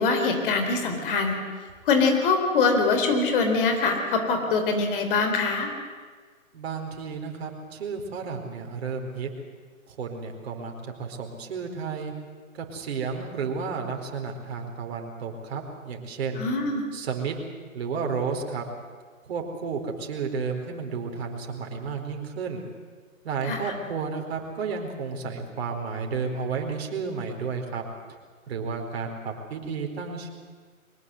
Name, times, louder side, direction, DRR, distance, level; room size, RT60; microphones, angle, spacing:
voice 1, 0.0-1.4 1.9-5.7 16.4-16.8 23.5-23.6, left 4 dB, 40° left, 5 dB, 4.1 m, -23 dB
voice 2, 6.5-9.3 9.9-12.1 12.5-16.5 16.9-17.3 17.7-18.6 19.2-22.6 23.2-27.8 28.5-30.3, right 5 dB, 50° right, 2 dB, 4.5 m, -32 dB
23.0 x 20.0 x 8.0 m, 1.5 s
figure-of-eight pair, 140°, 41 cm